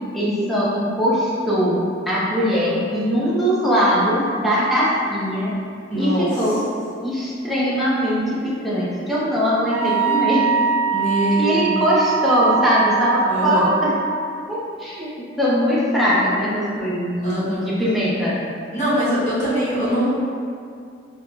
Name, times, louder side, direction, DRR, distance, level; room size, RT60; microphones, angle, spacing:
voice 1, 0.1-5.5 5.9-6.6 7.0-10.5 11.4-13.9 14.5-18.4, equal, ahead, -9 dB, 0.6 m, -21 dB
voice 2, 5.9-6.3 10.9-11.8 13.3-13.7 17.2-17.7 18.7-20.1, equal, 35° left, -12 dB, 1.2 m, -22 dB
Wind instrument woodwind instrument, 9.7-14.1, right 6 dB, 40° right, 0.9 m, -22 dB
3.6 x 2.1 x 3.1 m, 2.4 s
head